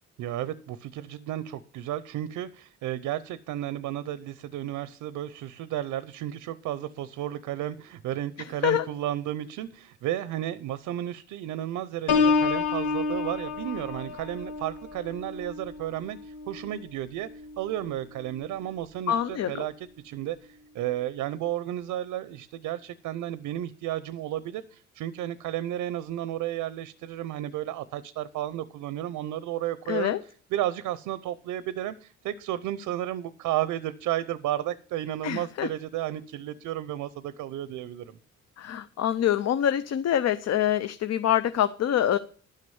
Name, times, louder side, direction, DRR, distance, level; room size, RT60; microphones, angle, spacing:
voice 1, 0.2-17.3 17.6-30.2 30.5-38.2, right 12 dB, 90° right, 16 dB, 0.7 m, -33 dB
Piano, 12.1-17.7 18.2-18.5, left 4 dB, 90° left, 2.1 m, -29 dB
voice 2, 19.1-19.7 29.9-30.2 35.2-35.7 38.6-42.2, left 10 dB, 60° left, 12 dB, 0.7 m, -25 dB
11.5 x 6.5 x 7.0 m, 0.42 s
cardioid pair, 90°, 30 cm